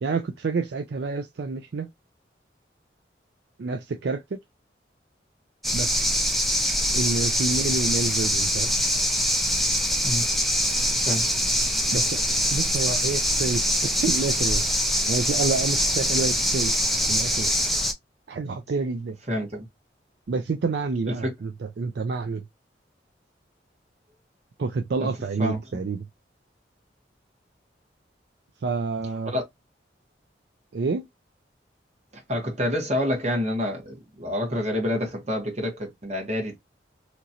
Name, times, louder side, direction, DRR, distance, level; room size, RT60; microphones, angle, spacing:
voice 1, 0.0-1.9 3.6-4.4 5.7-5.9 6.9-8.7 11.9-12.2 12.5-14.6 15.1-16.8 17.1-17.5 18.3-19.2 20.3-22.4 24.6-26.1 28.6-29.3 30.7-31.1, right 4 dB, 65° right, 0.4 m, -28 dB
sound 1, 5.6-17.9, equal, ahead, 0.4 m, -24 dB
voice 2, 19.3-19.7 21.2-21.3 25.0-25.1 25.4-25.6 29.3-29.4 32.1-36.6, left 1 dB, 35° right, 1.3 m, -27 dB
2.9 x 2.5 x 2.7 m
head